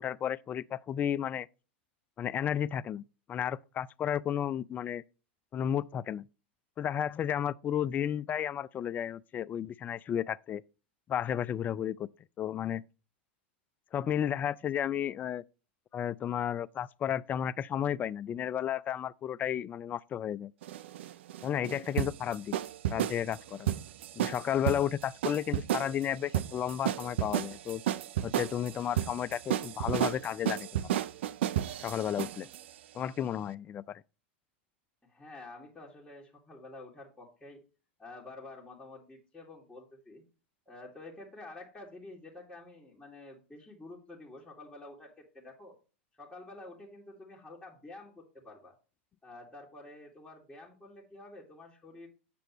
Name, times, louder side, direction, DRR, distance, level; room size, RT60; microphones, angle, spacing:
voice 1, 0.0-1.5 2.2-3.0 3.3-5.0 5.5-6.2 6.8-10.6 11.1-12.1 12.4-12.8 13.9-15.4 15.9-20.5 21.4-22.6 22.9-23.7 24.2-27.8 28.2-31.0 31.8-32.5 32.9-34.0, left 9 dB, 25° left, 0.3 m, -33 dB
sound 1, 20.6-32.6, right 12 dB, 75° right, 0.5 m, -32 dB
voice 2, 35.0-37.6 38.0-40.2 40.7-45.8 46.2-48.7 49.2-52.1, left 2 dB, 5° left, 2.1 m, -49 dB
7.6 x 6.9 x 3.0 m
hypercardioid pair, 110°, 6 cm